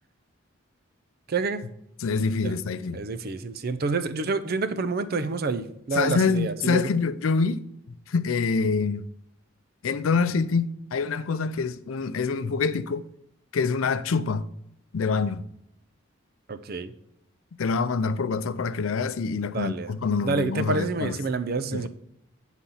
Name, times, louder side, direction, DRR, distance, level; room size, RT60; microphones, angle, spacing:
voice 1, 1.3-1.6 2.4-2.5 2.9-6.9 16.5-16.9 19.5-19.9 20.2-21.9, right 4 dB, 45° right, 0.5 m, -28 dB
voice 2, 2.0-3.0 5.9-7.7 8.1-9.1 9.8-13.0 13.5-14.5 14.9-15.5 17.6-21.2 21.7-21.9, left 4 dB, 80° left, 0.5 m, -26 dB
8.7 x 4.0 x 5.6 m
head